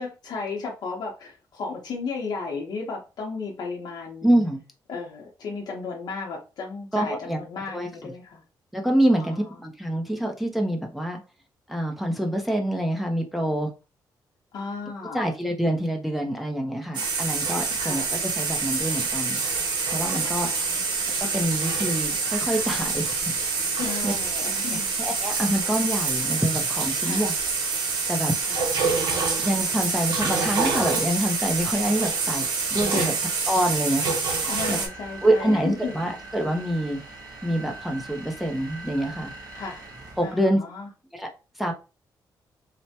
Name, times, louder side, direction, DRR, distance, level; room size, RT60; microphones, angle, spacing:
voice 1, 0.0-4.3 4.9-8.4 9.1-9.4 14.5-15.3 17.7-18.1 20.2-20.8 23.8-24.9 27.0-27.3 28.4-28.7 32.9-33.2 34.5-35.9 39.5-39.8 40.2-40.9, left 4 dB, 65° left, 0.7 m, -34 dB
voice 2, 4.2-4.6 6.9-7.4 7.7-8.1 8.7-11.2 11.7-13.7 15.1-19.4 19.9-20.5 21.1-23.4 24.0-24.1 24.7-27.3 27.7-28.4 29.4-32.5 32.7-33.1 33.5-34.8 35.2-37.0 37.4-39.3 40.2-40.6 41.1-41.3 41.6-41.7, right 1 dB, ahead, 0.5 m, -26 dB
sound 1, 16.9-34.9, right 4 dB, 90° right, 0.7 m, -26 dB
sound 2, 34.3-40.5, right 2 dB, 50° right, 1.0 m, -42 dB
3.2 x 2.1 x 2.7 m
wide cardioid pair, 155°, 8 cm